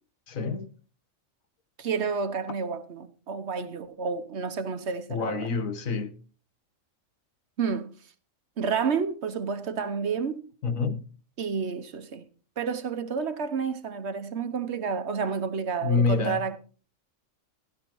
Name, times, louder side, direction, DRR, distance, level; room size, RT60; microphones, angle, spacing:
voice 1, 0.3-0.7 5.1-6.1 10.6-11.0 15.8-16.5, left 4 dB, 90° left, 1.6 m, -27 dB
voice 2, 1.8-5.5 7.6-7.9 8.6-10.5 11.4-12.2 12.6-16.6, right 5 dB, 60° right, 1.1 m, -30 dB
16.5 x 11.5 x 3.1 m
omnidirectional pair, 1.4 m